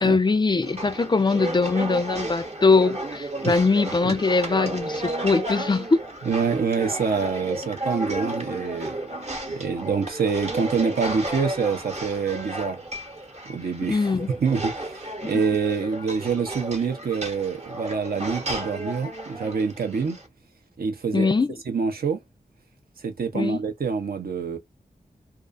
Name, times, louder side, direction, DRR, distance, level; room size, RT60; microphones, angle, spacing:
voice 1, 0.0-6.0 13.9-14.3 15.2-15.3 21.1-21.6 23.3-23.6, left 4 dB, 30° left, 0.3 m, -22 dB
sound 1, 0.6-20.3, right 1 dB, 45° right, 0.9 m, -33 dB
voice 2, 6.3-8.9 9.5-12.8 13.5-14.0 14.4-20.2 20.8-21.3 21.7-22.2 23.0-24.6, right 5 dB, 75° right, 0.6 m, -26 dB
2.4 x 2.3 x 2.5 m
cardioid pair, 60°, 16 cm